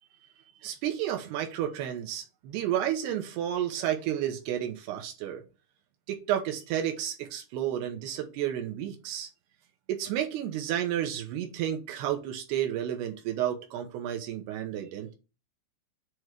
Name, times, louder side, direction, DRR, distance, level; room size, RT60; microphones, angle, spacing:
voice 1, 0.6-5.4 6.1-9.3 9.9-15.1, right 11 dB, 75° right, 2.5 m, -31 dB
8.1 x 3.1 x 4.6 m
omnidirectional pair, 5.7 m